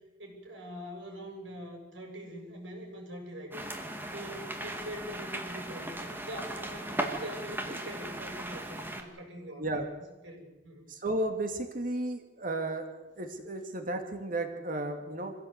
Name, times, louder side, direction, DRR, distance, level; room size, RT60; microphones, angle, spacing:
voice 1, 0.2-3.6 4.1-9.9 10.2-10.9, equal, 75° right, 2 dB, 7.4 m, -43 dB
sound 1, 3.5-9.0, right 1 dB, 10° right, 2.2 m, -37 dB
voice 2, 10.9-12.9 13.2-15.3, right 1 dB, 45° right, 5 dB, 2.4 m, -33 dB
25.5 x 16.0 x 8.3 m, 1.1 s
head